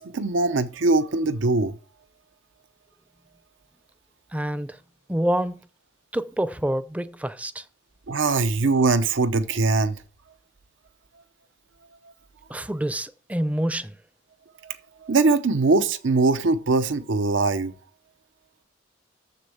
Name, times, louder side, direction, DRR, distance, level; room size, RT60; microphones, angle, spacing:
voice 1, 0.0-1.7 8.1-10.0 15.0-17.7, right 3 dB, 85° right, 0.7 m, -21 dB
voice 2, 4.3-4.8 5.1-5.6 6.1-7.6 12.5-13.9, right 1 dB, 10° right, 0.5 m, -27 dB
7.1 x 6.6 x 7.0 m
head